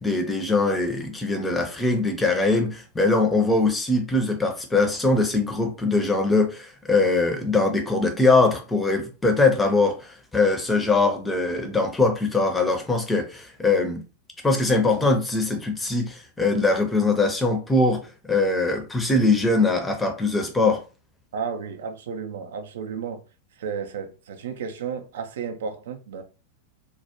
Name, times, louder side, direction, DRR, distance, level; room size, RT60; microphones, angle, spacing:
voice 1, 0.0-14.0 14.4-18.0 18.3-20.8, left 3 dB, 10° left, 0.6 m, -22 dB
voice 2, 21.3-23.2 23.6-26.2, right 6 dB, 60° right, 0.4 m, -33 dB
2.2 x 2.1 x 2.8 m
figure-of-eight pair, 90°, 0 cm